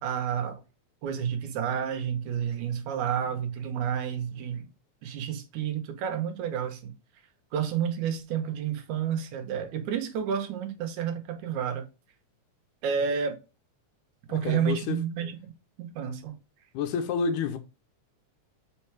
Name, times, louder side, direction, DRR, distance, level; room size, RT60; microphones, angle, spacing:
voice 1, 0.0-0.6 1.0-4.7 5.0-6.9 7.5-11.9 12.8-13.4 14.3-15.5 15.8-16.4, right 8 dB, 75° right, 2.3 m, -30 dB
voice 2, 14.3-15.0 16.7-17.6, left 6 dB, 90° left, 2.2 m, -29 dB
5.4 x 4.5 x 4.6 m
omnidirectional pair, 3.6 m